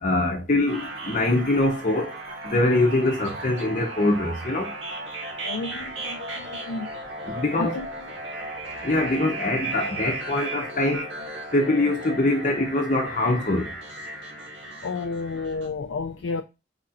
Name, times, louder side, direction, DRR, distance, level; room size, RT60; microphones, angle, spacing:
voice 1, 0.0-2.1 2.4-4.7 7.3-7.8 8.8-11.1 11.5-13.7, left 2 dB, 40° left, 0.8 m, -23 dB
sound 1, 0.7-15.7, right 2 dB, 85° right, 1.6 m, -35 dB
voice 2, 5.4-6.9 7.5-7.9 14.8-16.4, left 4 dB, 85° left, 0.4 m, -31 dB
5.0 x 4.2 x 2.4 m
head